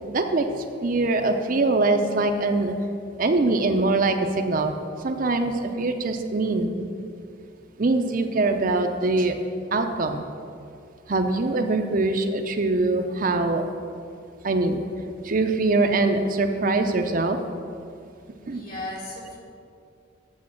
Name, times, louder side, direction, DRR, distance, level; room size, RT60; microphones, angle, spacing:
voice 1, 0.0-2.7 3.2-4.8 5.0-6.9 7.8-9.3 9.7-10.2 11.1-13.6 14.4-14.8 15.2-17.4 18.5-18.6, right 2 dB, 45° right, 5 dB, 0.6 m, -23 dB
voice 2, 18.5-19.4, left 2 dB, 50° left, -2 dB, 2.9 m, -36 dB
8.4 x 6.8 x 7.5 m, 2.4 s
head